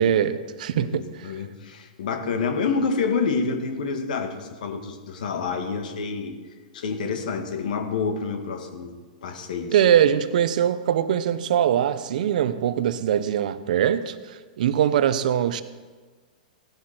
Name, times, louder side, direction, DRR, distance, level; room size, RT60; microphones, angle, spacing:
voice 1, 0.0-1.0 9.7-15.6, right 9 dB, 65° right, 13 dB, 0.9 m, -22 dB
voice 2, 0.8-6.4 6.7-9.7, left 5 dB, 70° left, 5 dB, 2.0 m, -28 dB
17.0 x 11.5 x 4.5 m, 1.4 s
hypercardioid pair, 120°, 5 cm